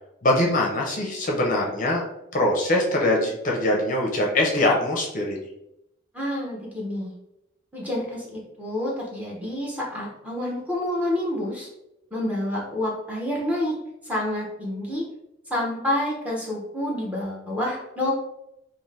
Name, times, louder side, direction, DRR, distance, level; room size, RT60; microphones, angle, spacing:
voice 1, 0.2-2.0 2.3-5.4, left 1 dB, 40° left, -1 dB, 0.5 m, -22 dB
voice 2, 6.1-7.1 7.7-11.7 12.1-13.8 14.0-15.0 15.5-18.1, left 1 dB, 5° right, -5 dB, 0.6 m, -28 dB
2.5 x 2.5 x 3.2 m, 0.84 s
head